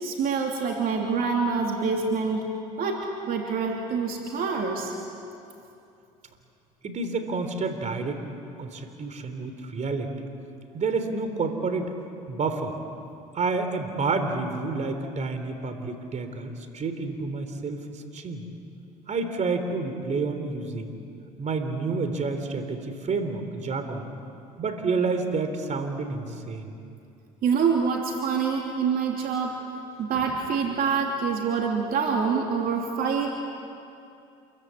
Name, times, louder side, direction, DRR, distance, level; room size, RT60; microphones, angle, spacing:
voice 1, 0.0-2.4 2.8-4.9 27.4-29.6 30.0-33.3, right 5 dB, 60° right, 1 dB, 3.1 m, -26 dB
voice 2, 6.8-8.2 8.6-10.1 10.7-11.9 12.3-12.8 13.3-18.5 19.1-21.0 21.4-24.1 24.6-26.7, right 4 dB, 45° right, 7 dB, 3.5 m, -29 dB
28.5 x 23.0 x 8.5 m, 2.6 s
supercardioid pair, 75°, 17 cm